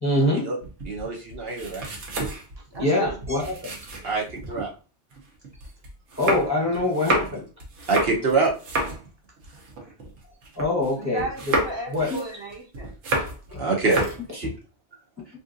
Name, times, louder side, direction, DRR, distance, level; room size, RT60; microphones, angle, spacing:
voice 1, 0.0-0.5 2.8-3.7 6.2-7.4 10.6-11.2 11.9-12.2, left 2 dB, 15° left, -3 dB, 0.8 m, -24 dB
sound 1, 0.6-4.7 5.1-10.9 11.2-13.5 13.8-14.3, right 2 dB, 85° right, 1.2 m, -30 dB
voice 2, 0.8-1.9 4.0-4.7 7.9-8.5 13.6-14.5, right 3 dB, 60° right, -2 dB, 1.0 m, -25 dB
voice 3, 2.7-3.2 3.6-3.7 10.8-12.9, right 2 dB, 25° right, -1 dB, 0.9 m, -34 dB
3.6 x 2.7 x 2.5 m, 0.34 s
omnidirectional pair, 1.2 m